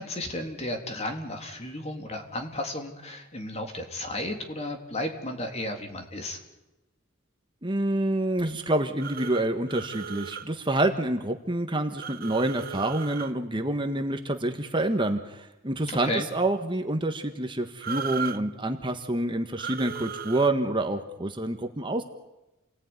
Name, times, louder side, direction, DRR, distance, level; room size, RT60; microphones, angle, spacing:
voice 1, 0.0-6.4 16.0-16.3, left 1 dB, 30° left, 4 dB, 3.5 m, -33 dB
voice 2, 7.6-22.0, right 1 dB, 25° right, 6 dB, 1.5 m, -27 dB
sound 1, 9.0-10.5 12.0-13.3 17.8-18.4 19.6-20.5, right 7 dB, 45° right, 1.1 m, -36 dB
29.5 x 19.5 x 9.8 m, 1.0 s
head